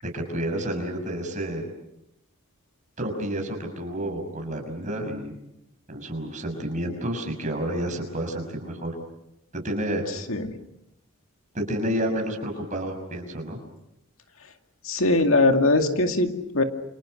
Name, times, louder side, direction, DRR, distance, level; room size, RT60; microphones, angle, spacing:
voice 1, 0.0-1.6 3.0-5.3 5.9-8.9 9.5-10.0 11.5-13.6, right 1 dB, 35° right, 4 dB, 6.1 m, -30 dB
voice 2, 14.8-16.6, left 2 dB, 65° left, 5 dB, 2.2 m, -21 dB
29.0 x 28.5 x 6.5 m, 0.85 s
head